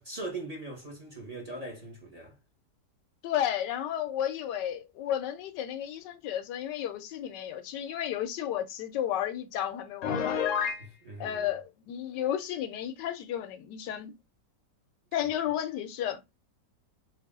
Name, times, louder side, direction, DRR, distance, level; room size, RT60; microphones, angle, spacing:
voice 1, 0.0-2.3 10.8-11.5, right 2 dB, 25° right, 1.2 m, -40 dB
voice 2, 3.2-10.4 11.2-14.1 15.1-16.2, left 10 dB, 80° left, 1.2 m, -32 dB
Piano, 10.0-10.8, left 7 dB, 60° left, 0.9 m, -29 dB
3.3 x 2.9 x 3.5 m
omnidirectional pair, 1.9 m